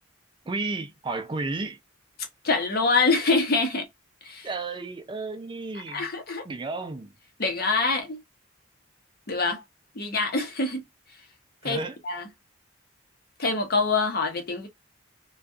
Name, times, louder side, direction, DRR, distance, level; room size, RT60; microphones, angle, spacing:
voice 1, 0.5-1.8 4.4-6.1 6.4-7.1 11.6-12.0, right 3 dB, 25° right, 0.4 m, -32 dB
voice 2, 2.4-3.9 4.2-4.5 5.9-6.5 7.4-8.2 9.3-9.6 9.9-10.8 11.6-12.3 13.4-14.7, left 3 dB, 50° left, 0.8 m, -25 dB
2.6 x 2.3 x 2.2 m
head